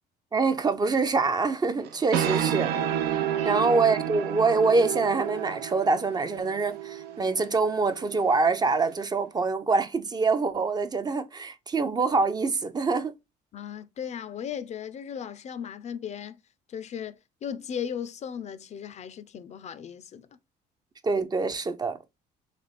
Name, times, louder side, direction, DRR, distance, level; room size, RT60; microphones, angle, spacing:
voice 1, 0.3-2.7 3.0-3.2 3.4-13.1 21.0-22.0, right 4 dB, 25° right, 0.5 m, -25 dB
sound 1, 1.8-9.0, right 10 dB, 80° right, 0.6 m, -31 dB
voice 2, 3.3-3.6 13.5-16.4 16.7-20.3, left 8 dB, 45° left, 0.4 m, -37 dB
3.3 x 3.2 x 4.0 m
cardioid pair, 110°, 17 cm